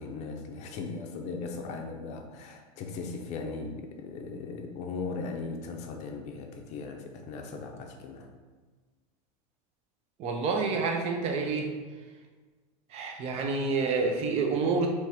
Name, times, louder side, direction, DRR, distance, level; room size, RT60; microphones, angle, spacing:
voice 1, 0.0-8.3, left 4 dB, 35° left, 3 dB, 0.6 m, -38 dB
voice 2, 10.2-11.7 12.9-14.9, right 4 dB, 35° right, 3 dB, 0.6 m, -28 dB
3.5 x 3.1 x 4.4 m, 1.4 s
supercardioid pair, 150°, 19 cm